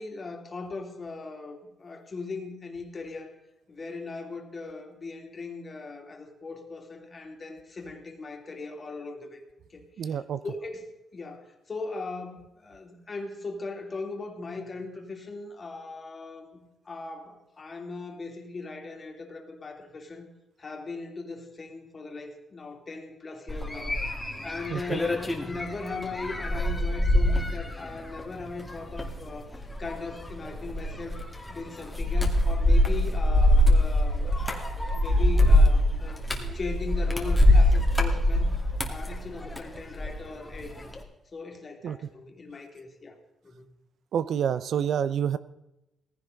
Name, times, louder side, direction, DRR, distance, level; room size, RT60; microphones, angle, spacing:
voice 1, 0.0-3.4 3.7-9.4 9.7-20.3 20.6-31.2 31.5-38.5 38.9-40.8 41.3-43.7, left 3 dB, 35° left, 2 dB, 2.9 m, -39 dB
voice 2, 10.0-10.4 24.7-25.0 41.8-42.0 44.1-45.4, right 8 dB, 70° right, 15 dB, 0.7 m, -28 dB
sound 1, 23.5-40.2 40.5-41.0, left 1 dB, 10° left, 2.3 m, -24 dB
18.0 x 15.5 x 4.0 m, 0.93 s
cardioid pair, 110°, 0 cm